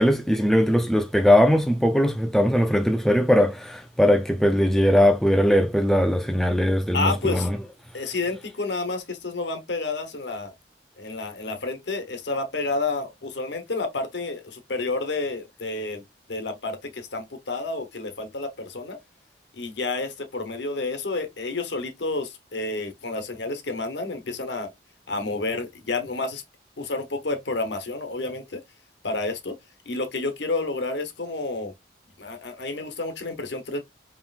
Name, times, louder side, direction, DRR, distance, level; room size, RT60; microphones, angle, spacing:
voice 1, 0.0-7.6, equal, ahead, 0.3 m, -20 dB
voice 2, 6.9-7.5 7.9-10.5 11.0-16.0 16.3-19.0 19.5-24.7 25.1-26.4 26.8-28.6 29.0-29.6 29.8-31.7 32.2-33.8, left 3 dB, 70° left, 1.0 m, -30 dB
5.5 x 3.1 x 2.4 m
head